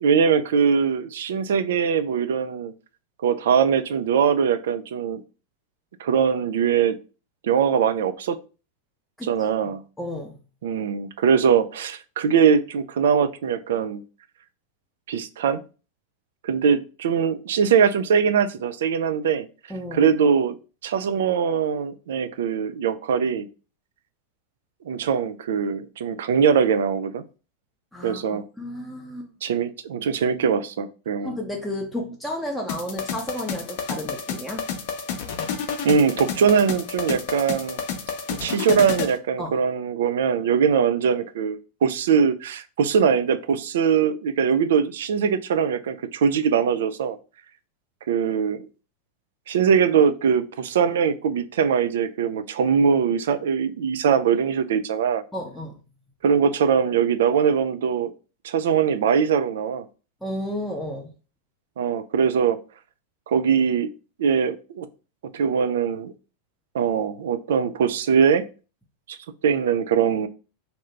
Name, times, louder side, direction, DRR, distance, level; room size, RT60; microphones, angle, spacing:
voice 1, 0.0-2.7 3.2-5.2 6.0-7.0 7.4-8.4 9.3-9.8 10.6-14.0 15.1-15.6 16.4-19.5 19.9-20.6 20.8-23.5 24.9-27.2 28.0-28.4 29.4-31.3 35.8-37.8 38.3-47.2 48.1-48.7 49.5-55.2 56.2-58.1 58.4-59.8 61.8-62.6 63.3-63.9 64.2-64.9 65.3-66.1 66.7-68.4 69.1-69.2 69.4-70.3, right 7 dB, 60° right, 0.4 m, -21 dB
voice 2, 10.0-10.4 19.7-20.0 27.9-29.3 31.2-34.6 39.4-39.5 55.3-55.8 60.2-61.1, left 1 dB, ahead, 0.6 m, -32 dB
sound 1, 32.7-39.2, left 6 dB, 50° left, 0.6 m, -30 dB
2.7 x 2.7 x 3.3 m
figure-of-eight pair, 90°, 0 cm